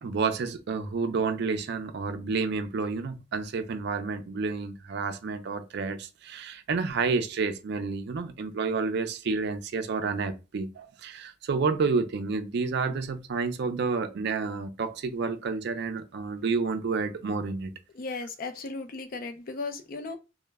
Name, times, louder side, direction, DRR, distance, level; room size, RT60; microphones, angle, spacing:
voice 1, 0.0-17.7, right 4 dB, 60° right, 0.4 m, -30 dB
voice 2, 17.9-20.2, left 3 dB, 50° left, 0.4 m, -36 dB
2.1 x 2.0 x 3.3 m
head